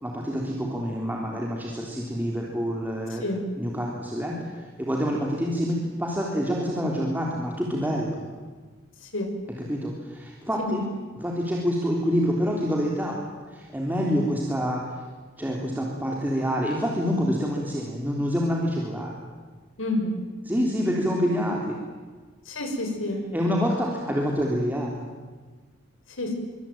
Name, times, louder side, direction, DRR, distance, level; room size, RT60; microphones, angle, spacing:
voice 1, 0.0-3.2 3.6-8.2 9.6-10.8 11.1-13.2 13.5-15.0 15.4-19.1 20.4-21.8 23.3-25.0, equal, 10° right, -2 dB, 3.7 m, -27 dB
voice 2, 19.8-20.2 22.5-23.2 26.2-26.3, left 1 dB, 75° left, 4 dB, 6.1 m, -28 dB
25.5 x 24.5 x 9.2 m, 1.4 s
head